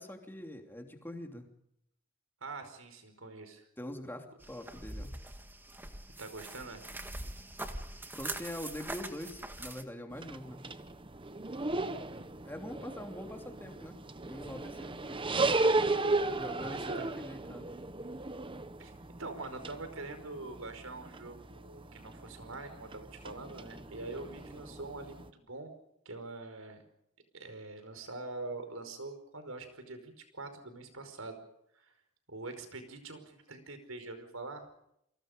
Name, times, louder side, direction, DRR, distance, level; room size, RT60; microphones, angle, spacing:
voice 1, 0.0-1.5 3.8-5.2 8.1-10.6 12.4-14.0 14.2-15.5 16.4-17.7, left 1 dB, 10° left, 4 dB, 3.0 m, -44 dB
voice 2, 2.4-3.7 6.2-6.9 11.6-12.3 16.7-17.1 18.8-18.9 19.2-25.7 26.0-26.8 27.3-31.4 31.7-31.9 32.3-34.7, right 3 dB, 85° right, 8 dB, 5.0 m, -44 dB
sound 1, 4.4-9.8, right 1 dB, 10° right, 1.8 m, -43 dB
sound 2, 10.1-25.3, right 2 dB, 25° right, 1.1 m, -36 dB
29.0 x 24.0 x 5.2 m, 0.78 s
head